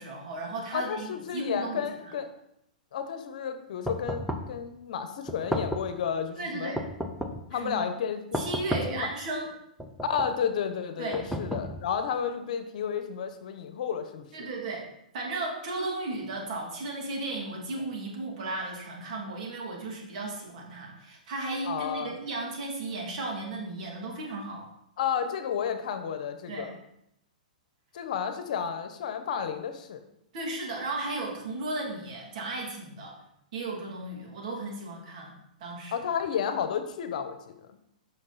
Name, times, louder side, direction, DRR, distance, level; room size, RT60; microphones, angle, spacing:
voice 1, 0.0-2.1 6.4-6.8 7.5-7.9 8.3-9.5 11.0-11.2 14.3-14.8 15.1-24.7 26.5-26.7 30.3-33.2 33.5-35.3 35.6-36.0, right 2 dB, 60° right, -1 dB, 2.7 m, -35 dB
voice 2, 0.7-2.3 2.9-6.7 7.5-8.4 8.9-9.1 10.1-14.5 21.7-22.1 25.0-26.7 27.9-30.0 35.9-37.4, left 7 dB, 65° left, 9 dB, 1.0 m, -32 dB
sound 1, 3.9-4.6 5.3-6.0 6.8-7.5 8.3-9.1 9.8-10.4 11.1-12.0, equal, ahead, 0.7 m, -33 dB
8.7 x 6.0 x 4.2 m, 0.78 s
hypercardioid pair, 130°, 4 cm